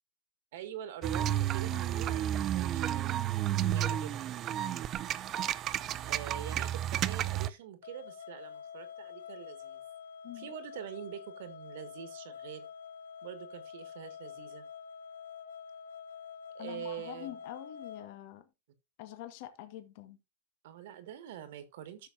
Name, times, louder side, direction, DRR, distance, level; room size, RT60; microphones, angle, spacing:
voice 1, 0.5-3.2 3.6-4.2 6.0-9.8 10.3-12.7 13.2-14.6 16.5-17.4 20.6-22.1, right 10 dB, 65° right, 2.0 m, -45 dB
sound 1, 1.0-7.5, right 11 dB, 30° right, 0.4 m, -32 dB
voice 2, 1.7-2.2 10.2-10.5 16.6-18.5 19.0-20.2, left 14 dB, 50° left, 1.5 m, -46 dB
sound 2, 7.8-18.1, left 7 dB, 85° left, 1.2 m, -47 dB
14.5 x 6.5 x 2.7 m
supercardioid pair, 150°, 0 cm